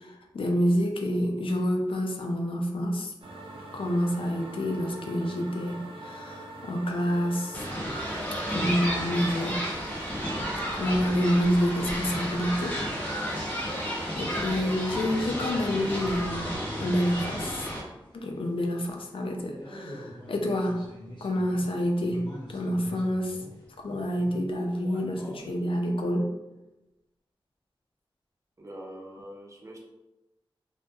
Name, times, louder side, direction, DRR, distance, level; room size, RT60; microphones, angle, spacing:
voice 1, 0.0-3.1 3.7-7.7 8.5-9.6 10.7-12.8 13.6-17.7 18.1-20.8 21.2-22.2 22.5-23.4 23.8-26.3, equal, 85° left, 2 dB, 0.4 m, -28 dB
sound 1, 3.2-14.1, right 1 dB, 90° right, 0.4 m, -43 dB
sound 2, 7.5-17.8, equal, 20° left, 0.6 m, -32 dB
sound 3, 15.0-18.5 18.8-18.9 19.5-25.5, equal, 60° left, 0.9 m, -44 dB
voice 2, 28.6-29.8, equal, 35° right, -1 dB, 0.5 m, -43 dB
2.1 x 2.1 x 2.8 m, 0.98 s
wide cardioid pair, 85°, 9 cm